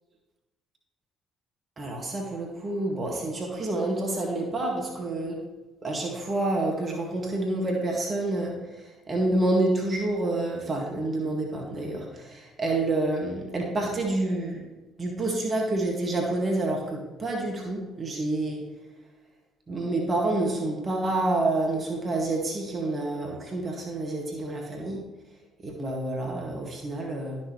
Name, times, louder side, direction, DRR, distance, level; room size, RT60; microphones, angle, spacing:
voice 1, 1.8-5.4 5.8-14.7 15.0-18.6 19.7-25.0 25.6-27.4, right 2 dB, 35° right, 0 dB, 2.0 m, -28 dB
12.0 x 6.2 x 3.2 m, 1.2 s
figure-of-eight pair, 50°, 0 cm